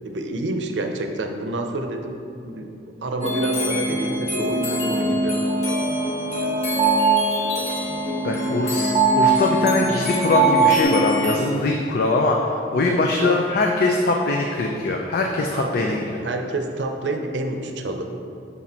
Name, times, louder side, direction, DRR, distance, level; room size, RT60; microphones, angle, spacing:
voice 1, 0.0-2.2 2.4-2.7 3.0-5.4 12.8-13.3 15.5-15.9 16.2-18.1, right 2 dB, 70° right, 5 dB, 0.6 m, -28 dB
sound 1, 3.2-11.4, left 1 dB, 35° left, 1.0 m, -24 dB
sound 2, 5.5-10.8, right 6 dB, 30° right, 0.9 m, -21 dB
voice 2, 8.2-16.2, left 2 dB, 55° left, 1 dB, 0.4 m, -22 dB
7.2 x 4.1 x 4.3 m, 2.6 s
head